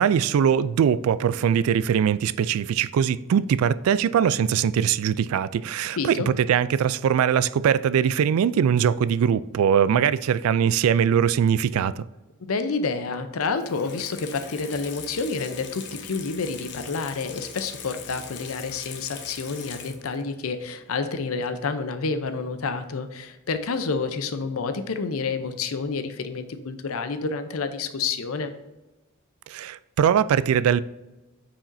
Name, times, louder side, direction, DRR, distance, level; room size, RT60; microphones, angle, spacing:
voice 1, 0.0-12.1 29.5-30.8, right 8 dB, 85° right, 0.3 m, -21 dB
voice 2, 6.0-6.3 12.5-28.5, left 4 dB, 85° left, 0.6 m, -29 dB
Water tap faucet / Sink (filling or washing), 13.6-20.3 20.6-20.7, left 6 dB, 55° left, 0.8 m, -40 dB
8.7 x 4.9 x 2.6 m
head